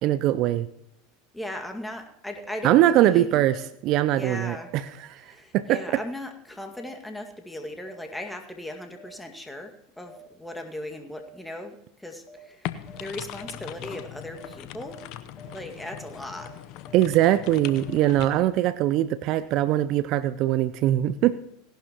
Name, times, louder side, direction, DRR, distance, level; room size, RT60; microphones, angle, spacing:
voice 1, 0.0-0.7 2.6-4.8 5.5-5.8 16.9-21.4, right 13 dB, 50° right, 0.5 m, -22 dB
voice 2, 1.3-3.4 4.1-4.7 5.2-12.7 13.0-15.0 15.5-16.5, left 1 dB, 5° left, 2.0 m, -37 dB
sound 1, 2.4-2.5 3.5-3.6 4.6-4.7 5.7-5.8 6.8-6.9 7.9-8.0 9.0-9.1 10.1-10.2 11.2-11.3 12.3-12.4 12.9-13.0 13.4-13.5 13.9-14.0 14.4-14.5 14.9-15.0 15.4-15.5 15.9-16.0 16.4-16.5 16.9-18.0, left 1 dB, 25° left, 3.8 m, -49 dB
sound 2, 12.6-18.3, left 12 dB, 55° left, 0.8 m, -39 dB
18.0 x 11.5 x 3.0 m
hypercardioid pair, 90°, 0 cm